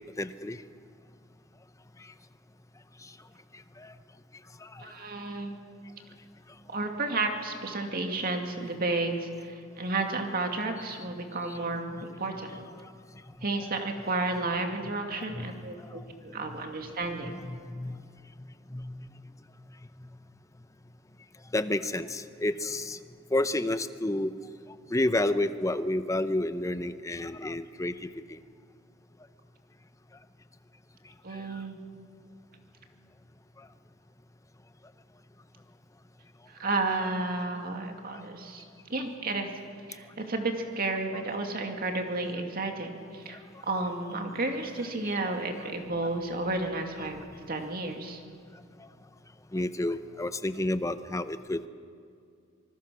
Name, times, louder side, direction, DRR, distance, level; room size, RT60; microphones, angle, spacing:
voice 1, 0.2-0.6 3.8-3.9 4.6-4.8 15.3-15.5 16.0-16.1 16.5-16.6 17.2-18.0 18.4-19.3 20.0-20.1 21.5-23.0 23.3-24.3 24.9-28.4 49.5-51.7, left 1 dB, 15° left, 11 dB, 0.7 m, -30 dB
voice 2, 4.8-5.6 6.7-12.6 13.4-17.3 31.2-31.8 36.5-38.6 38.9-39.5 39.9-47.2 47.5-48.2, right 2 dB, 45° right, 3 dB, 2.3 m, -32 dB
26.0 x 20.5 x 6.2 m, 2.3 s
head